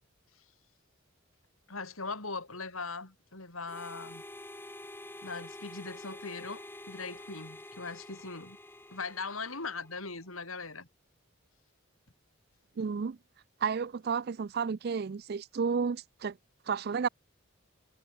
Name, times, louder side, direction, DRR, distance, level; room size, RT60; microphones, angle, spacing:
voice 1, 1.7-4.2 5.2-8.6 8.9-10.9, left 4 dB, 85° left, 6.2 m, -40 dB
Harmonica, 3.7-10.0, left 1 dB, 10° left, 2.1 m, -48 dB
voice 2, 12.8-13.2 13.6-16.3 16.7-17.1, right 6 dB, 50° right, 0.4 m, -31 dB
head